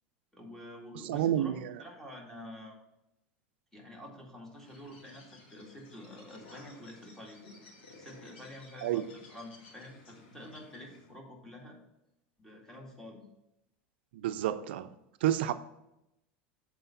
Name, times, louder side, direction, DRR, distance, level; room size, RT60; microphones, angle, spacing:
voice 1, 0.3-1.5 1.8-2.8 3.7-7.4 8.0-11.8 12.4-13.2, left 1 dB, 5° left, 2.2 m, -48 dB
voice 2, 1.0-1.8 8.8-9.1 14.1-14.9 15.2-15.5, right 11 dB, 75° right, 0.4 m, -30 dB
Bird, 4.5-11.2, left 2 dB, 85° left, 2.1 m, -55 dB
7.7 x 4.2 x 5.7 m
hypercardioid pair, 95°, 6 cm